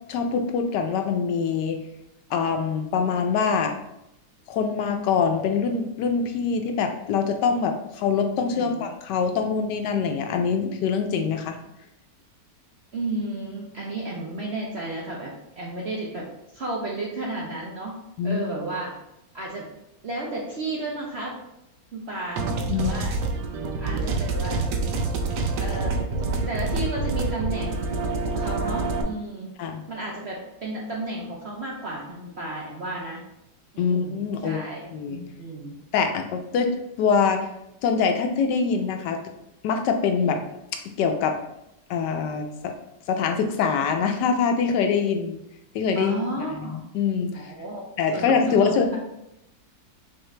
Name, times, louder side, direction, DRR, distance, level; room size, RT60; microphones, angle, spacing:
voice 1, 0.1-1.8 2.3-3.8 4.5-11.6 18.2-18.5 22.7-22.9 29.6-29.8 33.8-34.6 34.9-35.2 35.9-36.7 37.0-37.5 37.8-39.2 39.6-40.4 40.7-41.4 41.9-42.7 43.1-45.4 45.7-47.5 48.0-49.0, left 6 dB, 80° left, 5 dB, 1.2 m, -24 dB
voice 2, 8.4-8.9 12.9-16.2 16.5-17.9 18.2-18.9 19.3-19.7 20.0-21.3 21.9-22.4 22.7-23.1 23.8-24.7 25.5-25.9 26.5-29.5 29.9-33.2 33.7-35.7 40.1-40.4 46.0-46.8 47.3-47.8 48.1-49.0, right 2 dB, 60° right, -3 dB, 0.7 m, -33 dB
sound 1, 22.4-29.0, right 3 dB, 80° right, 1.2 m, -27 dB
5.6 x 2.6 x 3.2 m, 0.84 s
omnidirectional pair, 1.9 m